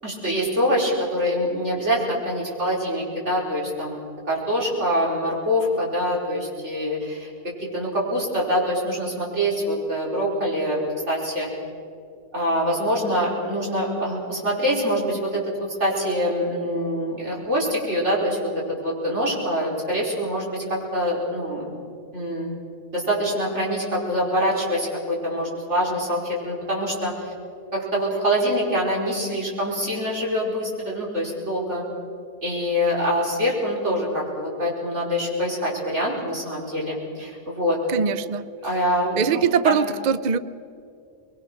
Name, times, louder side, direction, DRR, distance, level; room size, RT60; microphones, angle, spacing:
voice 1, 0.0-4.0 4.3-7.3 7.7-11.5 12.3-18.4 18.8-21.7 22.1-22.5 22.9-27.3 27.7-31.8 32.4-37.8 38.6-39.8, equal, 45° right, -4 dB, 5.4 m, -25 dB
voice 2, 37.9-38.5 39.2-40.4, right 7 dB, 75° right, 15 dB, 0.4 m, -22 dB
24.0 x 22.5 x 6.3 m, 2.4 s
omnidirectional pair, 1.7 m